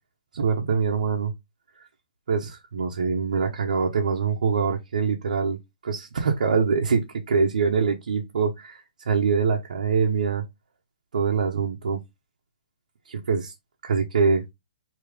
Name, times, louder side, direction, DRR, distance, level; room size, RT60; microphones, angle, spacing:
voice 1, 0.3-1.3 2.3-5.6 5.8-10.4 11.1-12.0 13.1-13.5 13.8-14.4, right 5 dB, 65° right, 0.9 m, -24 dB
5.0 x 3.0 x 3.4 m
hypercardioid pair, 180°, 4 cm